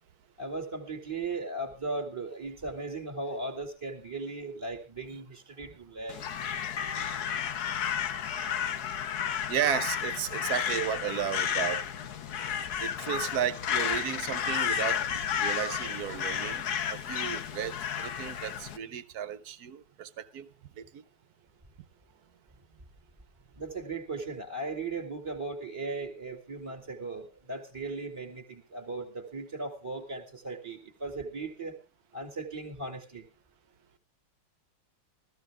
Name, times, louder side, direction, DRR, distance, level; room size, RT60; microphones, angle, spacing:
voice 1, 0.4-6.2 23.6-31.8 32.1-33.3, right 3 dB, 15° right, 2.1 m, -37 dB
Crow, 6.1-18.8, left 8 dB, 60° left, 1.3 m, -32 dB
voice 2, 9.5-11.8 12.8-20.5 20.8-21.0, right 9 dB, 60° right, 1.2 m, -34 dB
14.5 x 14.5 x 3.6 m
omnidirectional pair, 2.1 m